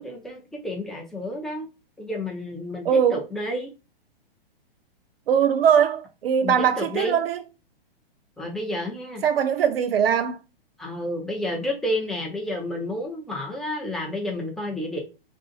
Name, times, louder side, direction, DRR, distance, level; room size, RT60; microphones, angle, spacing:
voice 1, 0.0-1.7 2.0-3.7 6.4-7.1 8.4-9.2 10.8-15.0, left 1 dB, ahead, 0.3 m, -30 dB
voice 2, 2.8-3.2 5.3-7.4 9.2-10.4, right 8 dB, 70° right, 0.6 m, -21 dB
2.6 x 2.3 x 3.8 m
hypercardioid pair, 125°, 30 cm